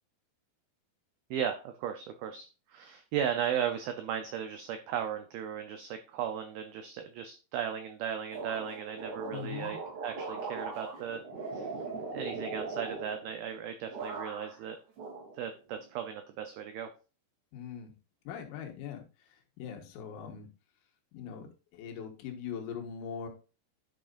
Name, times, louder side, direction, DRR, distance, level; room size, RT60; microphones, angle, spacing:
voice 1, 1.3-9.8 10.0-11.2 11.5-11.7 12.1-14.8 15.4-16.9, right 8 dB, 85° right, 7 dB, 2.1 m, -36 dB
sound 1, 8.3-13.6 13.9-14.6 15.0-15.8, right 3 dB, 65° right, 5.1 m, -40 dB
voice 2, 9.3-9.8 17.5-17.9 18.3-20.5 21.1-23.3, left 7 dB, 85° left, 2 dB, 3.7 m, -41 dB
10.5 x 6.3 x 2.6 m, 0.34 s
omnidirectional pair, 5.3 m